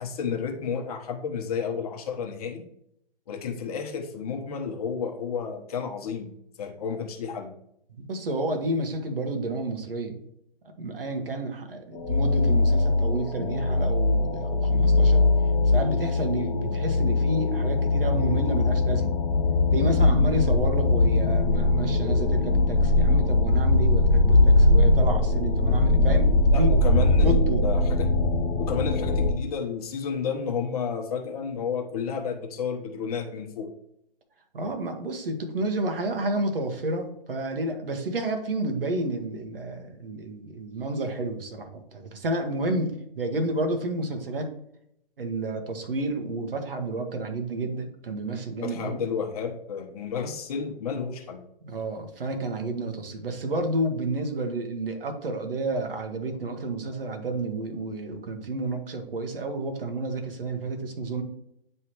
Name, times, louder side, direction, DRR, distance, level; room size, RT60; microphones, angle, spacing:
voice 1, 0.0-2.6 3.3-6.3 6.6-7.5 26.5-28.1 28.6-33.7 48.6-51.4, left 6 dB, 40° left, 3 dB, 1.0 m, -31 dB
voice 2, 8.0-10.2 10.8-15.2 15.7-19.1 19.7-26.7 27.2-27.7 34.5-44.5 45.2-49.0 51.6-61.2, right 2 dB, 70° right, 6 dB, 1.4 m, -30 dB
sound 1, 11.9-29.3, left 2 dB, 15° left, 0.7 m, -21 dB
9.5 x 3.4 x 3.0 m, 0.75 s
hypercardioid pair, 145°, 29 cm